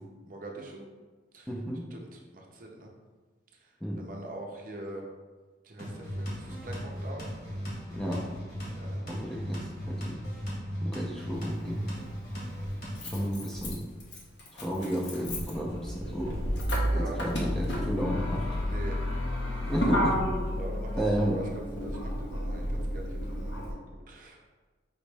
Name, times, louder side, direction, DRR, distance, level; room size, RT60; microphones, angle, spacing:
voice 1, 0.3-0.9 1.3-1.5 1.9-2.9 4.0-5.0 5.6-7.3 8.7-9.1 12.6-13.2 16.8-17.2 18.6-19.0 20.5-21.4 21.8-23.8 24.1-24.5, right 1 dB, 45° right, 0 dB, 0.6 m, -43 dB
voice 2, 1.5-1.8 3.8-4.0 7.9-8.2 9.1-10.2 10.8-11.8 13.0-13.8 14.5-16.4 16.9-18.5 19.6-20.2 21.0-21.4, equal, 5° left, -4 dB, 0.5 m, -32 dB
sound 1, 5.8-13.3, equal, 55° left, 1.5 m, -37 dB
Motor vehicle (road), 11.3-11.4 12.6-23.7, equal, 75° left, 1.0 m, -31 dB
5.3 x 3.0 x 3.3 m, 1.4 s
head